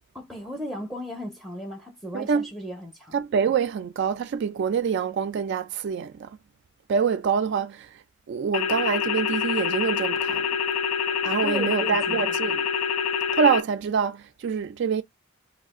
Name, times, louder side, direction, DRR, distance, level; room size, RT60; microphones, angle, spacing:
voice 1, 0.1-3.2 11.4-12.4, equal, 5° right, 0.5 m, -36 dB
voice 2, 2.1-2.5 3.1-6.4 6.9-10.5 11.2-12.6 13.3-15.0, right 6 dB, 55° right, 0.3 m, -25 dB
sound 1, 8.5-13.6, left 7 dB, 90° left, 0.4 m, -26 dB
2.4 x 2.1 x 3.5 m
head